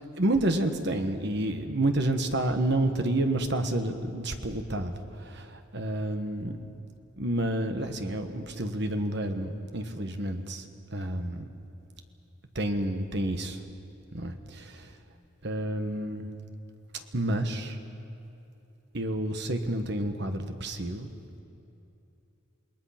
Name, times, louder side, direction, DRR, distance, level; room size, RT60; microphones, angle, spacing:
voice 1, 0.2-6.5 7.2-10.6 10.9-11.5 12.5-13.6 14.1-15.0 15.4-16.3 17.1-17.8 18.9-21.1, right 1 dB, 55° right, 7 dB, 1.4 m, -29 dB
28.0 x 19.5 x 5.9 m, 2.9 s
head